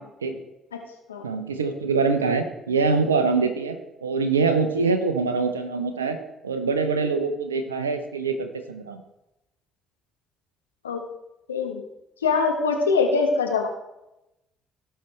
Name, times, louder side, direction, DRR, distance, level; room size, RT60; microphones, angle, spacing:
voice 1, 1.2-6.2 6.4-9.0, right 4 dB, 90° right, 8 dB, 0.6 m, -24 dB
voice 2, 11.5-11.8 12.2-13.7, left 4 dB, 90° left, 3 dB, 1.2 m, -23 dB
17.0 x 5.7 x 3.2 m, 0.92 s
hypercardioid pair, 50°, 0 cm